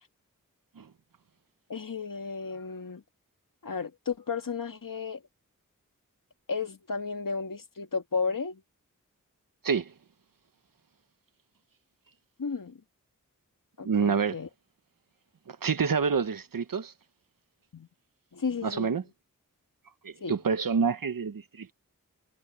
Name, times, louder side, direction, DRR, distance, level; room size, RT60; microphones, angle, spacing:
voice 1, 1.7-3.0 3.6-5.2 6.5-8.6 12.4-12.8 13.8-14.5 17.7-17.9 18.3-19.0 20.2-20.4, left 5 dB, 75° left, 2.3 m, -33 dB
voice 2, 13.8-14.4 15.5-16.9 18.6-19.0 20.0-21.7, right 5 dB, 90° right, 1.2 m, -27 dB
wide cardioid pair, 55°, 33 cm